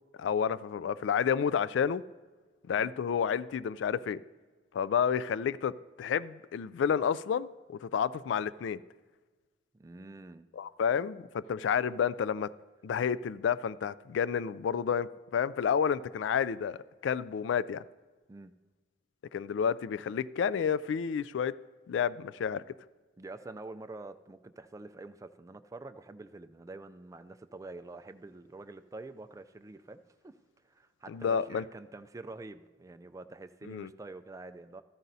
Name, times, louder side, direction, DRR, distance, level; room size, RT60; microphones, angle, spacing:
voice 1, 0.2-2.0 2.7-4.2 4.7-5.7 6.0-8.8 10.5-12.5 12.8-17.8 19.3-21.5 21.9-22.6 31.1-31.6 33.7-33.9, left 7 dB, 75° left, 0.3 m, -30 dB
voice 2, 9.7-10.5 18.3-18.5 23.2-30.4 30.6-34.8, right 2 dB, 20° right, 0.3 m, -47 dB
13.5 x 13.5 x 2.7 m
head